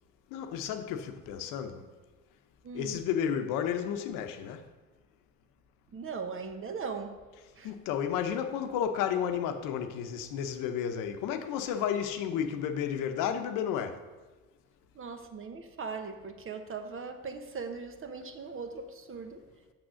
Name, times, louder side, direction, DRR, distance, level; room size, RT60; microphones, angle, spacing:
voice 1, 0.3-1.9 2.7-4.6 7.6-14.0, left 8 dB, 90° left, 0.8 m, -32 dB
voice 2, 2.6-3.0 5.9-7.2 7.5-7.7 14.9-19.4, right 5 dB, 40° right, 1.1 m, -39 dB
6.5 x 6.3 x 6.2 m
cardioid pair, 90°, 31 cm